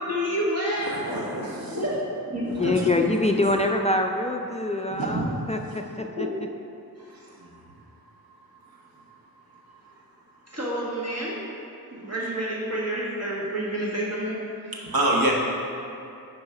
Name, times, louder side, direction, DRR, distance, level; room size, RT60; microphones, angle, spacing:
voice 1, 0.0-2.0 2.3-2.7 6.2-6.3 7.0-7.3 10.5-11.5 11.9-14.4 14.6-14.7, equal, 45° right, -6 dB, 1.4 m, -29 dB
voice 2, 0.9-1.8 2.5-3.1 5.0-5.3 7.1-7.6 8.7-9.0 14.7-15.3, right 1 dB, 70° right, -2 dB, 1.1 m, -28 dB
voice 3, 2.4-6.3, left 2 dB, 20° left, 3 dB, 0.3 m, -25 dB
5.3 x 4.8 x 4.8 m, 2.6 s
wide cardioid pair, 60°, 36 cm